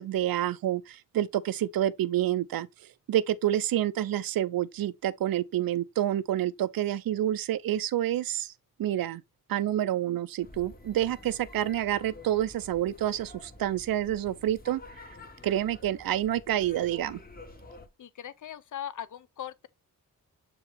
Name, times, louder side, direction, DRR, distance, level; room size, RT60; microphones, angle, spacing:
voice 1, 0.0-2.7 3.1-8.5 8.8-9.2 9.5-15.0 15.4-17.2, right 12 dB, 90° right, 0.5 m, -28 dB
sound 1, 10.4-17.9, left 2 dB, 25° left, 1.2 m, -49 dB
voice 2, 18.0-19.7, left 10 dB, 60° left, 0.7 m, -39 dB
7.7 x 4.6 x 3.3 m
wide cardioid pair, 160°, 34 cm